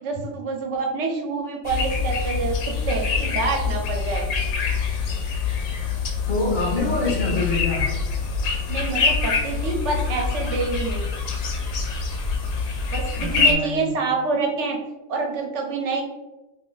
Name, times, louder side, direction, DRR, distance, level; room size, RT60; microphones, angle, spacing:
voice 1, 0.0-4.3 8.7-11.0 12.9-14.8 15.1-16.0, right 4 dB, 70° right, 1 dB, 0.9 m, -27 dB
sound 1, 1.6-13.5, left 5 dB, 80° left, 1.0 m, -25 dB
voice 2, 6.3-7.9 13.1-14.0, left 2 dB, 45° left, -2 dB, 0.7 m, -26 dB
2.5 x 2.5 x 3.7 m, 1.1 s
omnidirectional pair, 1.3 m